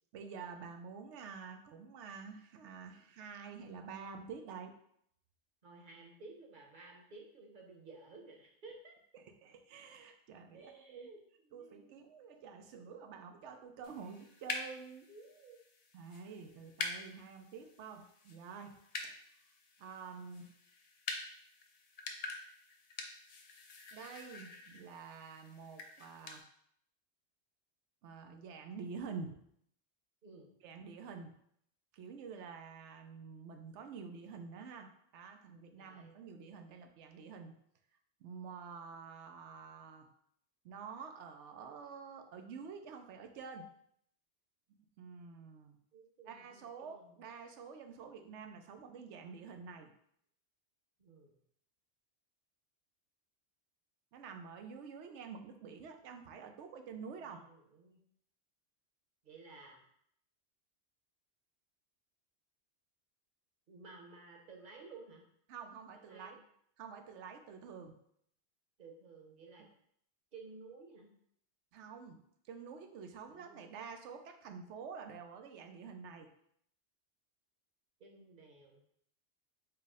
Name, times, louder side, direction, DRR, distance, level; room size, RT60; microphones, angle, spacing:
voice 1, 0.1-4.7 9.1-11.1 11.5-15.1 15.9-18.8 19.0-19.1 19.8-20.5 23.9-26.4 28.0-29.4 30.6-31.3 31.9-37.5 38.2-40.1 40.6-43.7 45.0-45.8 46.3-49.9 54.1-57.4 65.5-66.4 66.8-68.0 71.7-72.2 72.5-76.3, right 5 dB, 90° right, 5 dB, 0.9 m, -48 dB
voice 2, 5.6-9.0 10.5-11.2 11.5-12.0 15.1-15.6 30.2-30.5 35.7-36.1 45.9-47.2 51.0-51.4 57.2-58.0 59.2-59.8 63.7-65.2 65.9-66.4 68.8-69.7 70.3-71.1 73.2-73.6 78.0-78.8, right 3 dB, 50° right, 0 dB, 0.9 m, -55 dB
sound 1, 13.8-26.4, left 3 dB, 50° left, 0.4 m, -47 dB
4.7 x 2.1 x 4.7 m, 0.69 s
omnidirectional pair, 1.2 m